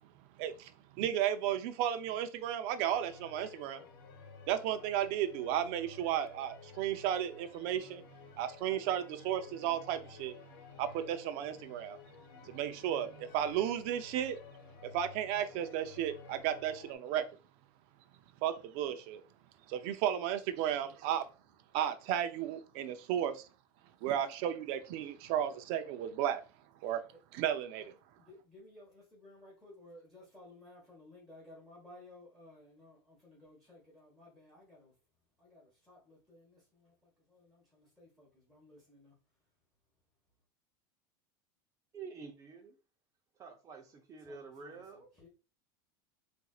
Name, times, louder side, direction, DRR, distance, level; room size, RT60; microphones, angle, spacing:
voice 1, 0.4-3.8 4.5-8.1 8.4-10.4 10.8-12.0 12.4-14.4 14.8-17.2 18.4-19.2 19.7-21.2 21.7-23.5 24.0-26.4 26.8-27.0 27.3-27.9, right 10 dB, 55° right, 0.5 m, -34 dB
sound 1, 2.9-17.0, left 5 dB, 80° left, 0.9 m, -54 dB
voice 2, 28.1-34.9 35.4-39.1 44.2-45.3, left 1 dB, ahead, 1.3 m, -57 dB
voice 3, 41.9-42.7 43.4-45.1, right 5 dB, 30° right, 0.8 m, -48 dB
4.1 x 2.6 x 2.4 m
supercardioid pair, 140°, 12 cm